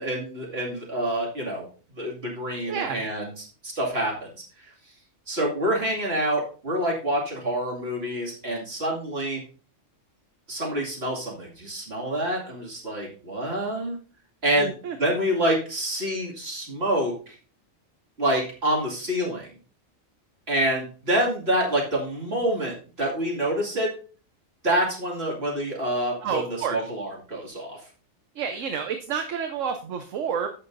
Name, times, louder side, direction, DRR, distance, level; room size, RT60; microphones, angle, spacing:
voice 1, 0.0-1.6 1.9-4.2 5.3-9.4 10.5-14.0 14.4-14.7 15.0-17.3 18.2-19.5 20.5-23.9 24.6-27.8, right 1 dB, 50° right, -2 dB, 2.6 m, -27 dB
voice 2, 2.7-3.1 14.6-15.1 26.2-26.8 28.4-30.5, right 7 dB, 70° right, 6 dB, 1.1 m, -29 dB
15.0 x 5.8 x 2.6 m, 0.39 s
omnidirectional pair, 1.4 m